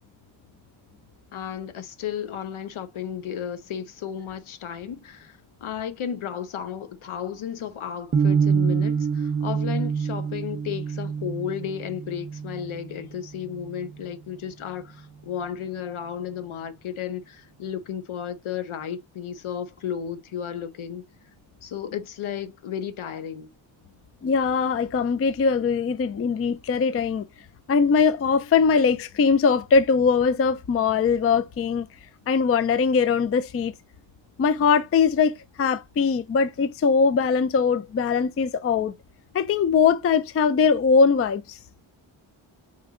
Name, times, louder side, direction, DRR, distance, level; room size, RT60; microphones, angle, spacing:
voice 1, 1.3-21.0 21.6-23.5, left 9 dB, 80° left, 0.9 m, -33 dB
sound 1, 8.1-14.2, right 6 dB, 30° right, 0.5 m, -26 dB
voice 2, 24.2-27.2 27.7-31.9 32.3-33.7 34.4-35.3 35.6-38.9 39.3-41.6, left 5 dB, 30° left, 0.4 m, -21 dB
4.3 x 3.0 x 3.6 m
wide cardioid pair, 120°, 48 cm